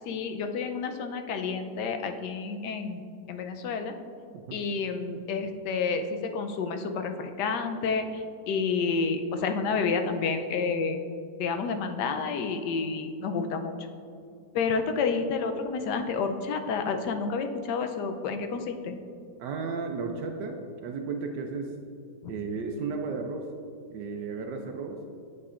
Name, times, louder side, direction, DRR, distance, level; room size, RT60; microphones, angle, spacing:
voice 1, 0.1-3.0 3.3-3.9 4.5-11.0 11.4-13.7 14.5-19.0, left 5 dB, 80° left, 6 dB, 1.2 m, -30 dB
voice 2, 19.4-21.7 22.3-23.4 23.9-25.0, right 4 dB, 80° right, 3 dB, 1.2 m, -34 dB
8.5 x 7.7 x 2.4 m, 2.5 s
omnidirectional pair, 1.8 m